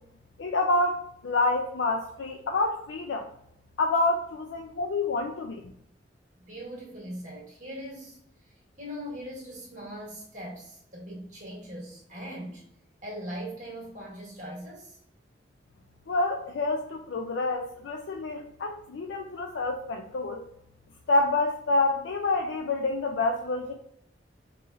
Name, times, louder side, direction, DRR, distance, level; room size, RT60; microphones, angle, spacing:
voice 1, 0.4-3.3 3.8-5.6 16.1-20.4 21.1-23.7, left 2 dB, 85° left, 3 dB, 0.4 m, -27 dB
voice 2, 6.4-12.6 13.0-15.0, equal, 45° right, -4 dB, 1.6 m, -40 dB
4.7 x 3.2 x 2.5 m, 0.71 s
head